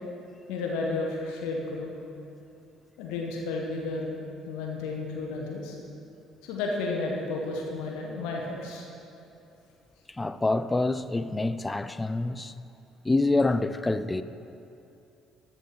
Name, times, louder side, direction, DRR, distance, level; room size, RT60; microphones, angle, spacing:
voice 1, 0.5-1.9 3.0-4.2 4.4-5.8 6.4-8.8, left 3 dB, 65° left, 1.5 m, -32 dB
voice 2, 10.1-12.5 13.0-14.2, left 2 dB, 15° left, 0.5 m, -26 dB
14.0 x 7.4 x 5.8 m
figure-of-eight pair, 50°, 0 cm